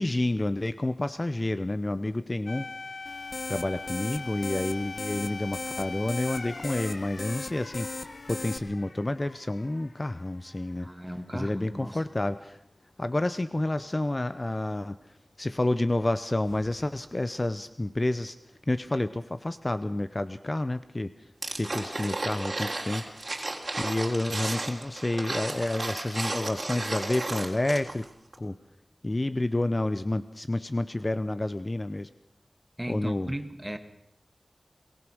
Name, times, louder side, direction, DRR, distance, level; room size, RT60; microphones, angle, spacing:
voice 1, 0.0-2.7 3.5-10.9 11.3-12.6 13.0-15.0 15.4-18.4 18.7-21.1 21.6-23.1 23.8-28.1 28.4-28.5 29.0-32.1 32.9-33.3, left 2 dB, 35° left, 13 dB, 0.7 m, -29 dB
sound 1, 2.5-11.1 11.4-11.6 16.4-17.0, left 3 dB, 85° left, 1.7 m, -42 dB
sound 2, 3.1-8.6, left 3 dB, 60° left, 1.2 m, -38 dB
voice 2, 10.8-12.0 32.8-33.8, right 1 dB, 10° right, 8 dB, 1.9 m, -36 dB
sound 3, 21.4-28.0 28.3-28.4, right 2 dB, 45° right, 3.5 m, -33 dB
23.0 x 18.5 x 6.2 m, 0.73 s
wide cardioid pair, 75°, 0 cm